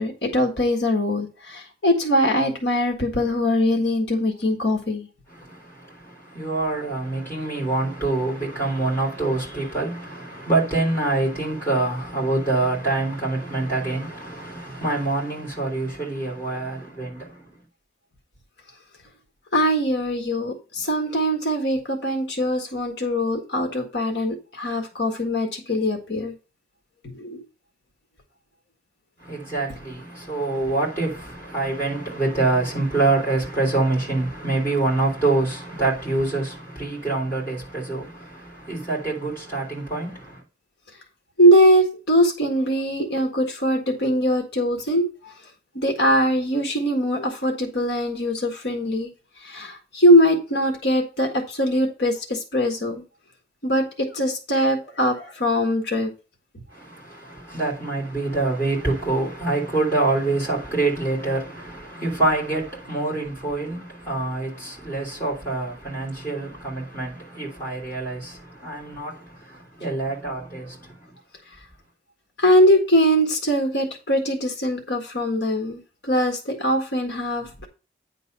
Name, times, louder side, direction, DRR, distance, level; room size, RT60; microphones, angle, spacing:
voice 1, 0.0-5.1 19.5-26.3 27.1-27.4 41.4-45.3 45.7-49.1 49.4-53.0 53.6-56.1 72.4-77.7, equal, 75° left, 1.7 m, -21 dB
voice 2, 5.3-17.6 29.2-40.4 56.7-71.1, right 2 dB, 15° left, 3.8 m, -26 dB
9.6 x 3.9 x 5.5 m
head